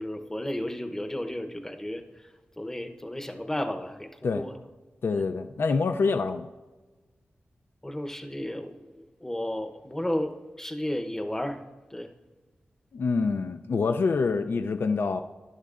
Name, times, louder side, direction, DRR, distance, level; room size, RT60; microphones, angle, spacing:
voice 1, 0.0-4.5 5.1-5.2 7.8-11.6 11.9-12.1, left 1 dB, 10° left, 5 dB, 0.8 m, -33 dB
voice 2, 5.0-6.5 12.9-15.2, left 4 dB, 65° left, 7 dB, 0.4 m, -26 dB
18.5 x 11.0 x 2.4 m, 1.2 s
wide cardioid pair, 105°, 4 cm